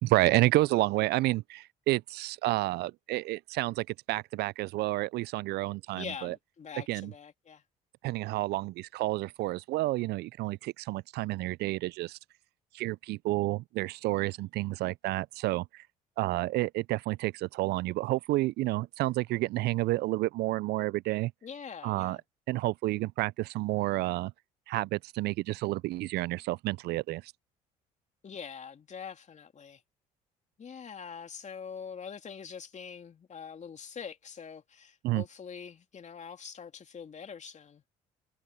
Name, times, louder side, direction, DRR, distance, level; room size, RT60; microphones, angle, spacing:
voice 1, 0.0-6.3 6.9-7.1 8.0-12.2 12.7-15.6 16.2-21.3 21.8-22.2 22.5-24.3 24.7-27.2 35.0-35.2, right 18 dB, 65° right, 0.5 m, -30 dB
voice 2, 5.9-7.6 21.4-22.2 28.2-29.8 30.6-37.8, left 6 dB, 40° left, 2.8 m, -44 dB
hypercardioid pair, 60°, 18 cm